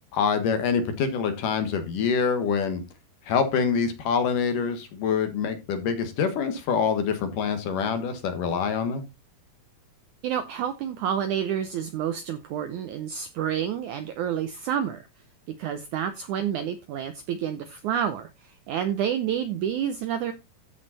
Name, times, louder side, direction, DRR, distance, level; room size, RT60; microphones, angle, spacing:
voice 1, 0.1-2.8 3.3-9.0, left 6 dB, 65° left, 2.8 m, -25 dB
voice 2, 10.2-15.0 15.6-20.3, right 9 dB, 80° right, 1.8 m, -29 dB
14.0 x 5.4 x 4.1 m
omnidirectional pair, 4.4 m